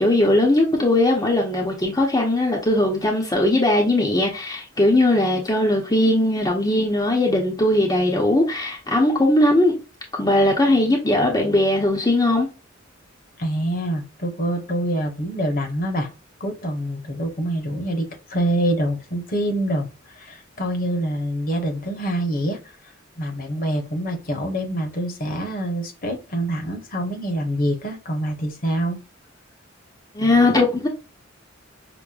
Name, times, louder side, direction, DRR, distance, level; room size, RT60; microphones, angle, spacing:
voice 1, 0.0-9.8 10.2-12.5 30.1-30.9, left 1 dB, 20° left, 0.7 m, -19 dB
voice 2, 13.4-16.1 16.4-19.9 20.1-22.6 23.2-29.0, right 1 dB, 45° left, 0.9 m, -25 dB
6.0 x 2.1 x 2.4 m
head